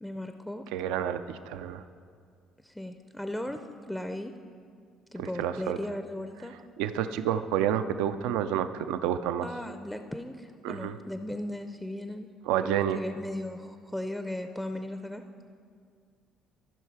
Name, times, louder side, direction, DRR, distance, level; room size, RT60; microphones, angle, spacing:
voice 1, 0.0-0.6 2.6-3.6 3.9-4.3 5.1-6.5 9.4-12.3 12.6-15.2, left 1 dB, 5° left, 7 dB, 0.5 m, -37 dB
voice 2, 0.7-1.8 5.2-5.8 6.8-9.5 10.6-11.0 12.5-13.0, right 10 dB, 80° right, 11 dB, 0.4 m, -29 dB
13.5 x 5.6 x 4.6 m, 2.2 s
supercardioid pair, 70°, 0 cm